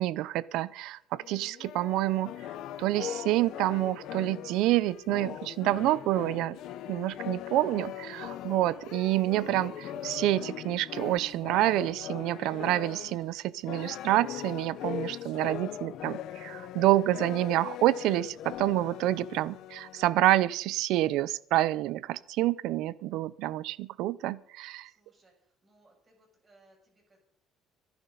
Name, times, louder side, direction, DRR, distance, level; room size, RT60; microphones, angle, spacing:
voice 1, 0.0-2.3 2.8-6.6 6.9-24.9, right 15 dB, 80° right, 19 dB, 0.6 m, -28 dB
sound 1, 0.7-0.8 1.2-10.4 10.9-11.2, left 7 dB, 85° left, 2.6 m, -47 dB
sound 2, 2.2-13.3 13.6-20.4, left 12 dB, 65° left, 0.7 m, -40 dB
voice 2, 24.8-27.2, right 2 dB, 20° right, -1 dB, 6.7 m, -65 dB
24.5 x 11.5 x 4.0 m, 0.64 s
cardioid pair, 145°, 0 cm